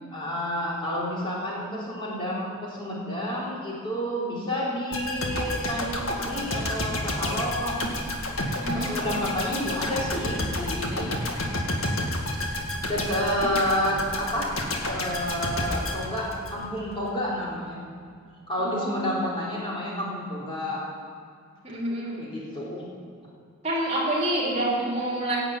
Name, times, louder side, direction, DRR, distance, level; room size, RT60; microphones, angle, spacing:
voice 1, 0.1-8.0 8.7-11.1 12.3-12.4 12.8-14.5 14.9-17.8 18.5-20.8 22.1-22.9, equal, 25° left, -6 dB, 3.7 m, -30 dB
sound 1, 4.9-16.9 17.2-17.4, left 1 dB, 70° left, 1.9 m, -30 dB
voice 2, 8.6-8.9 18.6-19.2 21.6-22.2 23.6-25.4, right 1 dB, 30° right, -4 dB, 3.1 m, -28 dB
17.5 x 7.1 x 8.8 m, 2.2 s
head